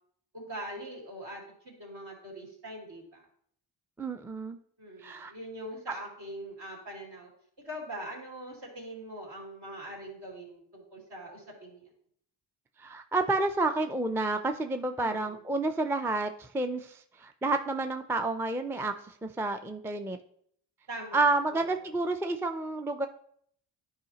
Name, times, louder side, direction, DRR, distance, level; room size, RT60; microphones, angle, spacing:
voice 1, 0.3-3.2 4.8-7.3 7.6-11.9 15.0-15.4 20.9-21.6, right 1 dB, 60° right, -2 dB, 3.0 m, -42 dB
voice 2, 4.0-4.6 5.0-5.3 12.8-18.9 19.2-20.2 21.1-23.1, right 2 dB, 5° right, 7 dB, 0.4 m, -30 dB
10.5 x 4.9 x 2.9 m, 0.65 s
cardioid pair, 75°, 46 cm